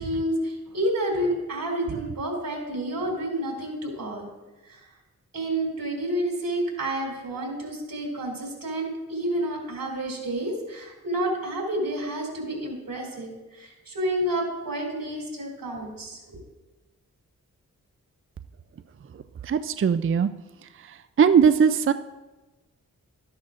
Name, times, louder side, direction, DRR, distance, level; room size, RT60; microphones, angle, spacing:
voice 1, 0.0-4.3 4.6-4.9 5.3-16.4, right 1 dB, 80° right, 0 dB, 2.8 m, -29 dB
voice 2, 19.5-20.3 21.2-21.9, right 7 dB, 40° right, 11 dB, 0.4 m, -19 dB
13.5 x 10.0 x 2.5 m, 1.1 s
cardioid pair, 45°, 33 cm